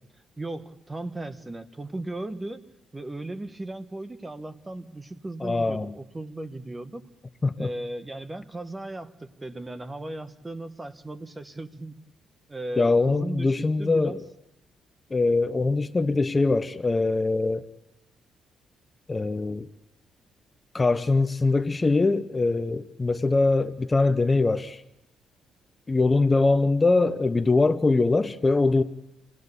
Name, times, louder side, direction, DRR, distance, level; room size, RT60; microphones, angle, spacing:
voice 1, 0.4-2.6 2.9-7.1 7.6-12.0 12.5-14.2, right 2 dB, 20° right, 1.3 m, -36 dB
voice 2, 5.4-5.9 7.4-7.7 12.8-14.2 15.1-17.6 19.1-19.7 20.7-24.8 25.9-28.8, left 3 dB, 25° left, 0.8 m, -22 dB
27.0 x 17.0 x 8.4 m
cardioid pair, 90°, 0 cm